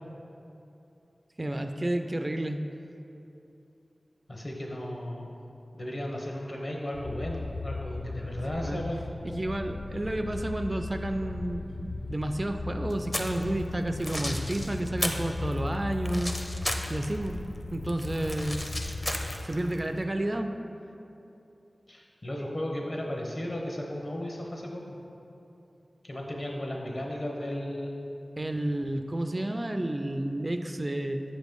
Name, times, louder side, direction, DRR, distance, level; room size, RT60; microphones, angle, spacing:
voice 1, 1.4-2.6 8.5-8.8 9.2-16.3 16.9-17.4 17.7-18.6 19.4-20.5 28.4-31.2, right 1 dB, 35° right, 6 dB, 0.3 m, -31 dB
voice 2, 4.3-5.3 5.7-9.0 21.9-25.0 26.0-28.0, left 1 dB, 55° left, -1 dB, 1.0 m, -35 dB
sound 1, 6.9-19.4, left 2 dB, 75° left, 0.5 m, -37 dB
sound 2, 12.9-13.4 13.9-15.3 15.5-17.3 17.6-19.8, left 1 dB, 20° left, 0.5 m, -34 dB
7.1 x 3.1 x 5.2 m, 2.9 s
cardioid pair, 45°, 0 cm